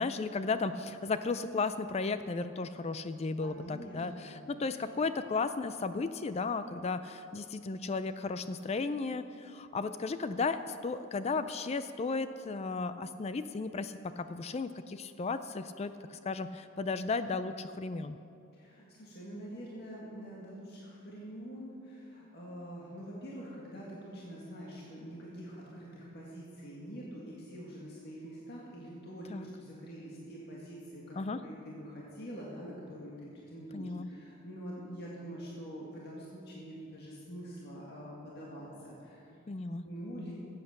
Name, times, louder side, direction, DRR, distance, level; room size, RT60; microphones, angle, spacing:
voice 1, 0.0-18.2 29.3-29.5 31.2-31.4 33.7-34.1 39.5-39.8, left 4 dB, 30° left, 12 dB, 0.3 m, -34 dB
voice 2, 3.4-4.6 5.0-5.1 18.5-39.5 39.8-40.3, equal, 50° left, -5 dB, 1.9 m, -45 dB
15.0 x 8.2 x 6.6 m, 2.6 s
head